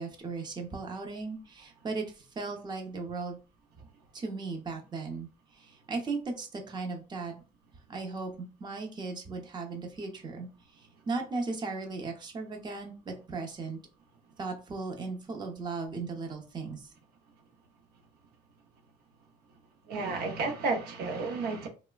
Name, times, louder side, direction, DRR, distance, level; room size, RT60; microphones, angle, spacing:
voice 1, 0.0-3.4 4.1-7.4 7.9-13.8 14.4-16.9, right 3 dB, 25° right, 0.7 m, -37 dB
voice 2, 19.9-21.7, right 3 dB, 70° right, 0.6 m, -32 dB
3.1 x 2.0 x 2.3 m
cardioid pair, 110°, 17 cm